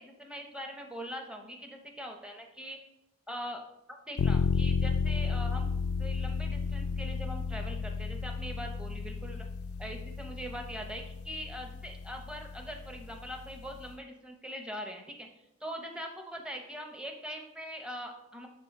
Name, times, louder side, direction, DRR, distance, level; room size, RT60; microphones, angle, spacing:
voice 1, 0.0-2.8 3.3-3.6 4.1-9.4 9.8-15.3 15.6-18.5, equal, 5° right, 3 dB, 0.7 m, -42 dB
sound 1, 4.2-13.9, left 5 dB, 90° left, 0.3 m, -33 dB
8.3 x 4.0 x 4.1 m, 0.89 s
head